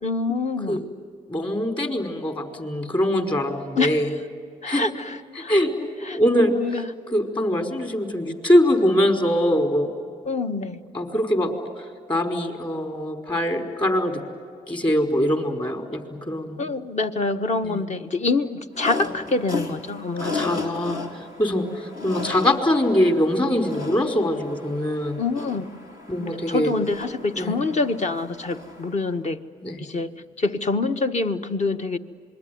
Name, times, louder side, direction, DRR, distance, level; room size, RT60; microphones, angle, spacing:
voice 1, 0.0-0.8 3.8-4.1 4.6-5.5 6.1-6.2 6.5-6.9 10.2-10.8 16.6-20.6 25.2-25.7 26.2-29.4 29.8-30.1 30.4-32.0, left 3 dB, 50° left, 7 dB, 1.5 m, -26 dB
voice 2, 1.3-4.1 4.6-4.8 5.3-5.7 6.1-6.5 7.1-9.9 10.9-11.5 11.8-14.2 14.7-16.0 16.3-16.6 17.6-17.8 20.2-21.0 21.4-25.2 26.1-26.7 27.3-27.6 29.6-29.8, left 1 dB, 30° left, 3 dB, 4.9 m, -23 dB
sound 1, 18.7-29.1, left 3 dB, 65° left, 4.0 m, -35 dB
27.0 x 22.0 x 9.5 m, 2.2 s
supercardioid pair, 55°, 16 cm